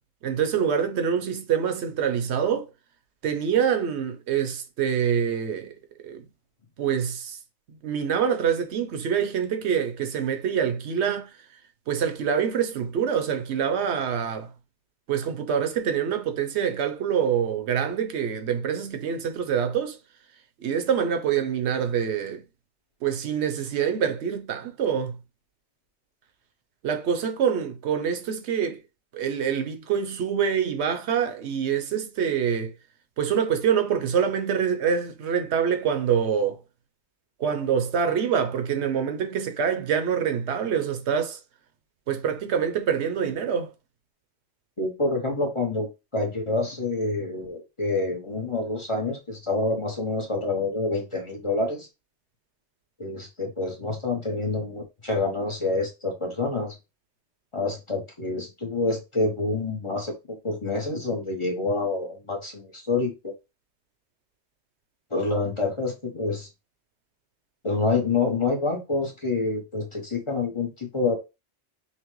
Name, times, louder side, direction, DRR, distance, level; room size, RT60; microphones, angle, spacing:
voice 1, 0.2-2.7 3.2-5.7 6.0-6.2 6.8-7.4 7.8-11.3 11.9-14.5 15.1-20.0 20.6-22.4 23.0-25.2 26.8-28.8 29.1-32.7 33.2-36.6 37.4-41.4 42.1-43.7, right 7 dB, 70° right, 1.0 m, -25 dB
voice 2, 44.8-45.9 46.1-51.9 53.0-56.7 57.5-63.3 65.1-66.5 67.6-71.2, left 3 dB, 30° left, 0.8 m, -27 dB
5.7 x 2.1 x 3.1 m
omnidirectional pair, 1.2 m